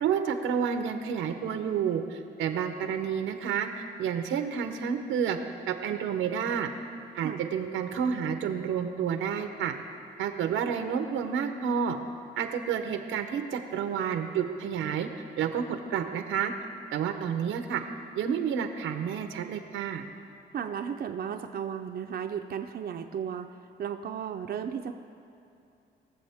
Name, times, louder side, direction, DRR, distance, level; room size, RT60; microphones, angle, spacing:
voice 1, 0.0-3.7 4.0-5.4 5.7-6.7 7.1-9.7 10.2-12.0 12.4-15.1 15.4-16.5 16.9-17.8 18.2-20.0, right 7 dB, 85° right, 7 dB, 0.9 m, -30 dB
voice 2, 20.5-23.5 23.8-24.9, right 8 dB, 50° right, 4 dB, 0.6 m, -34 dB
21.0 x 7.2 x 3.6 m, 2.7 s
cardioid pair, 90°, 20 cm